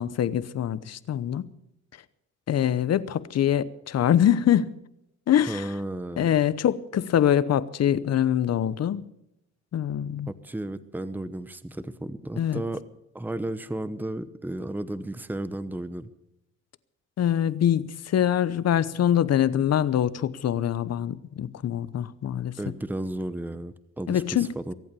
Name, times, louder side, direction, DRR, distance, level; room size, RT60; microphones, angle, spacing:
voice 1, 0.0-1.5 2.5-4.7 5.3-5.7 6.2-9.0 9.7-10.3 12.4-12.6 17.2-22.5 24.1-24.5, left 10 dB, 55° left, 0.9 m, -24 dB
voice 2, 5.5-6.3 10.3-12.8 13.1-16.1 22.6-24.7, right 1 dB, 5° right, 0.9 m, -33 dB
23.5 x 8.6 x 6.9 m
cardioid pair, 90°, 30 cm